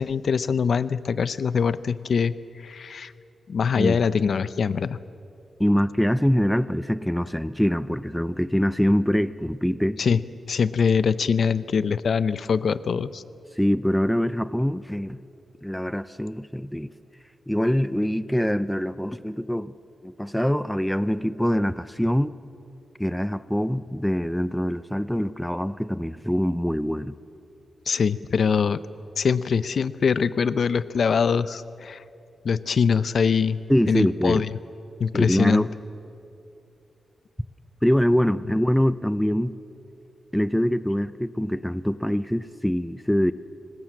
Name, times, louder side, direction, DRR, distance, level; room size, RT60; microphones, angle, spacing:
voice 1, 0.0-3.1 3.5-5.0 10.0-10.2 10.5-13.2 27.9-28.8 29.2-32.0 32.4-33.6 33.9-34.5 35.0-35.7, left 6 dB, 60° left, 16 dB, 0.6 m, -23 dB
voice 2, 5.6-10.0 13.6-15.2 15.6-16.9 17.5-19.7 20.0-22.4 23.0-27.1 33.7-34.4 35.1-35.7 37.8-39.5 40.3-43.3, equal, 5° left, 15 dB, 0.5 m, -24 dB
25.0 x 19.5 x 7.6 m, 2.7 s
wide cardioid pair, 125°, 0 cm